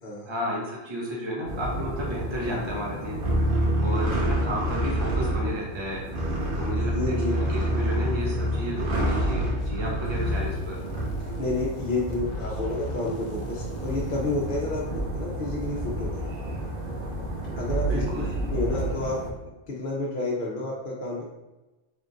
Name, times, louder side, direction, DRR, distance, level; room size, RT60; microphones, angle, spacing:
voice 1, 0.3-3.2 3.8-6.0 6.6-10.8 17.9-18.3, equal, 35° right, -3 dB, 0.5 m, -32 dB
sound 1, 1.5-19.3, right 1 dB, 55° right, 0.9 m, -28 dB
sound 2, 2.3-2.7 3.2-3.5 3.7-4.9 5.2-8.8, equal, 80° right, 0.9 m, -44 dB
voice 2, 6.8-7.3 11.4-16.3 17.5-21.2, left 2 dB, 55° left, -4 dB, 0.8 m, -30 dB
sound 3, 9.2-15.4, left 1 dB, 80° left, 1.0 m, -46 dB
3.6 x 2.4 x 3.8 m, 1.1 s
omnidirectional pair, 1.1 m